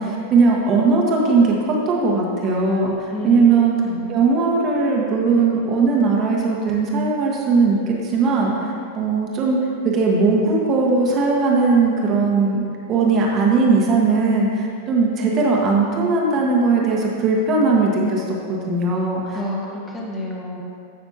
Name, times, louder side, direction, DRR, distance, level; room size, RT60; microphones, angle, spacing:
voice 1, 0.0-3.8 4.1-9.6 9.8-12.6 12.9-19.4, right 4 dB, 30° right, -2 dB, 1.3 m, -19 dB
voice 2, 3.1-3.6 3.9-4.1 19.3-20.6, left 2 dB, 20° left, -3 dB, 1.5 m, -29 dB
14.5 x 5.9 x 2.8 m, 2.3 s
figure-of-eight pair, 90°, 0 cm